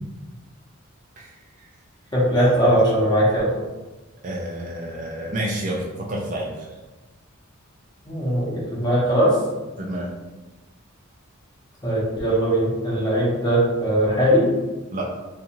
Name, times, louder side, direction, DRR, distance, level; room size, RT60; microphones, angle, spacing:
voice 1, 2.1-3.5 8.0-9.3 11.8-14.5, equal, 20° left, -7 dB, 0.9 m, -20 dB
voice 2, 4.2-6.6 9.8-10.1 14.9-15.1, right 1 dB, 35° right, -3 dB, 0.4 m, -29 dB
2.7 x 2.4 x 2.8 m, 1.1 s
head